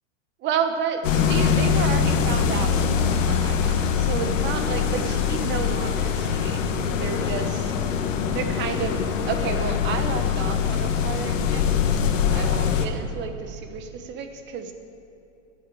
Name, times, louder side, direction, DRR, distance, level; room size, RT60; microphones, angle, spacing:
voice 1, 0.4-7.7 8.3-12.0 12.3-14.7, right 7 dB, 30° right, 7 dB, 1.0 m, -31 dB
sound 1, 1.0-12.9, left 7 dB, 80° left, 1.3 m, -23 dB
10.5 x 8.2 x 9.0 m, 2.8 s
supercardioid pair, 140°, 38 cm